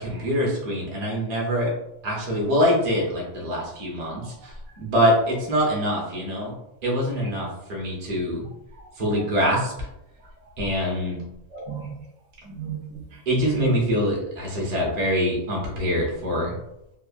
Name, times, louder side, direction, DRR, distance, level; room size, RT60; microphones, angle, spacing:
voice 1, 0.0-1.7 2.0-6.5 6.8-8.5 9.0-9.9 10.6-11.2 13.3-16.5, equal, 35° right, -3 dB, 0.8 m, -24 dB
voice 2, 10.2-10.7 11.5-12.0 12.4-13.8, right 10 dB, 70° right, -3 dB, 1.0 m, -35 dB
3.0 x 2.3 x 2.4 m, 0.85 s
omnidirectional pair, 1.4 m